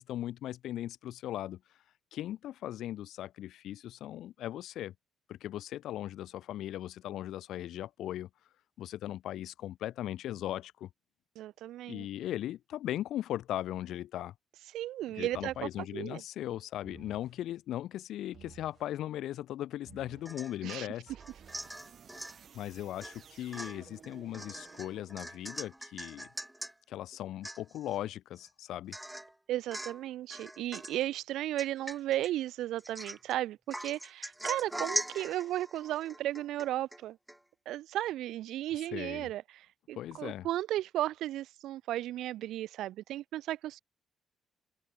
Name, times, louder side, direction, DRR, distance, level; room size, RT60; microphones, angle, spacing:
voice 1, 0.0-1.6 2.1-4.9 5.3-8.3 8.8-10.9 11.9-14.3 15.1-21.1 22.5-26.3 26.9-29.0 38.9-39.3 39.9-40.5, left 13 dB, 80° left, 1.0 m, -38 dB
voice 2, 11.4-12.1 14.7-16.2 20.6-20.9 29.5-37.2 37.7-43.8, right 14 dB, 85° right, 0.4 m, -35 dB
sound 1, 15.3-15.9 16.8-17.4 18.3-18.9 19.9-20.4 21.1-25.5, right 7 dB, 55° right, 2.8 m, -55 dB
Domestic sounds home sounds / Chink clink / Drip, 20.3-20.8 21.2-22.4 23.0-23.2 23.5-26.7 27.1-27.2 27.4-28.0 28.4-28.5 28.9-29.3 29.7-30.0 30.3-31.0 31.6-32.3 32.8-33.3 33.7-37.0 37.3-37.4, right 1 dB, 5° right, 1.2 m, -41 dB
cardioid pair, 90°, 0 cm